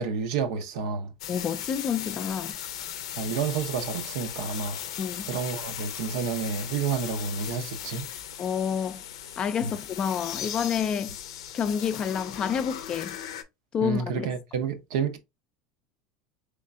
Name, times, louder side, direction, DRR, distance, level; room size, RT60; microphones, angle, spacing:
voice 1, 0.0-1.1 3.2-4.8 5.3-8.0 9.6-9.7 13.8-15.2, right 6 dB, 80° right, 0.7 m, -30 dB
sound 1, 1.2-13.4, left 10 dB, 90° left, 0.5 m, -37 dB
voice 2, 1.3-2.5 5.0-5.2 8.4-9.0 9.4-11.2 11.5-13.2 13.7-14.3, left 7 dB, 35° left, 0.3 m, -29 dB
3.5 x 3.3 x 2.4 m
supercardioid pair, 120°, 3 cm